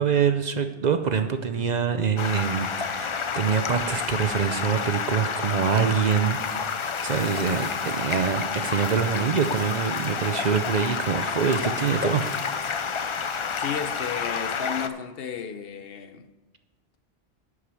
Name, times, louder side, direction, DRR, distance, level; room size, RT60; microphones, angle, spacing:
voice 1, 0.0-12.4, right 7 dB, 50° right, 7 dB, 0.6 m, -25 dB
Stream, 2.2-14.9, left 6 dB, 45° left, 0.4 m, -29 dB
sound 1, 5.0-14.1, left 2 dB, 30° left, 1.2 m, -47 dB
voice 2, 13.6-16.2, left 7 dB, 70° left, 10 dB, 0.9 m, -33 dB
11.0 x 4.9 x 7.0 m, 1.1 s
omnidirectional pair, 1.1 m